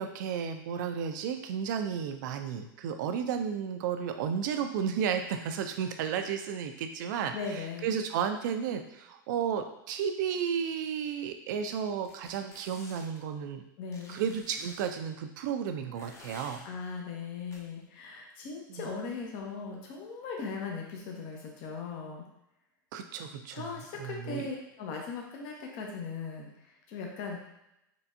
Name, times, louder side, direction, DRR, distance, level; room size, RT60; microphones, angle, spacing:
voice 1, 0.0-13.6 14.1-16.6 18.7-18.9 22.9-23.7 24.0-24.4, right 7 dB, 60° right, 7 dB, 0.5 m, -33 dB
voice 2, 7.3-7.9 13.8-14.2 16.6-22.2 23.5-26.5 26.9-27.4, left 5 dB, 50° left, 0 dB, 1.0 m, -38 dB
sound 1, 12.0-13.2 13.9-14.9 16.0-16.6 17.5-17.6, left 1 dB, 25° left, 1.0 m, -51 dB
4.5 x 3.2 x 2.7 m, 0.84 s
hypercardioid pair, 90°, 11 cm